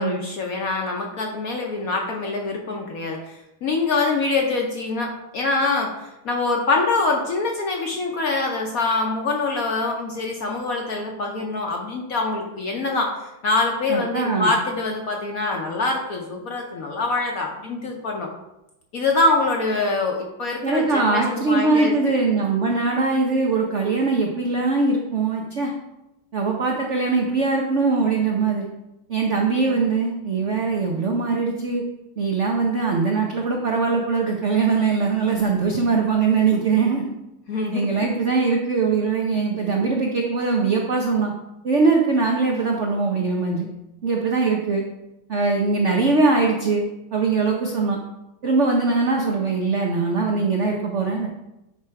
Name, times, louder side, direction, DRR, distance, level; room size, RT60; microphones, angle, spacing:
voice 1, 0.0-18.3 18.9-22.1 29.6-29.9 37.5-38.1, left 3 dB, 60° left, 1 dB, 1.0 m, -24 dB
voice 2, 13.9-14.5 20.6-25.7 26.3-28.7 29.1-31.8 32.2-37.1 37.7-41.3 41.6-43.7 44.0-44.8 45.3-46.8 47.1-48.0 48.4-51.3, right 4 dB, 85° right, 0 dB, 0.6 m, -21 dB
9.5 x 3.4 x 4.7 m, 0.92 s
omnidirectional pair, 2.4 m